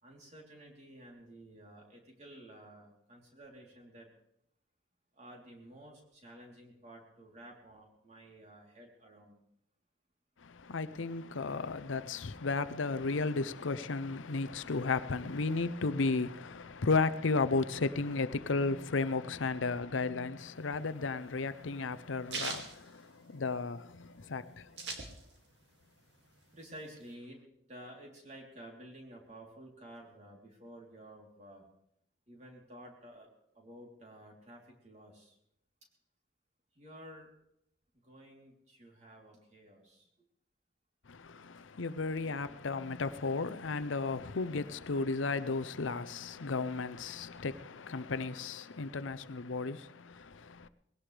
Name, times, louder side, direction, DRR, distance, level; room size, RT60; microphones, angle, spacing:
voice 1, 0.0-4.1 5.1-9.4 26.5-27.4 27.7-31.7 32.3-33.3 33.5-35.4 36.7-37.3 38.0-40.1, right 1 dB, 35° right, 3.4 m, -52 dB
voice 2, 10.4-25.0 41.1-50.7, left 3 dB, 85° left, 0.7 m, -34 dB
sound 1, 20.6-23.7 24.1-24.2 24.3-25.6 26.0-27.1, right 4 dB, 65° right, 2.3 m, -41 dB
20.5 x 17.0 x 3.4 m
head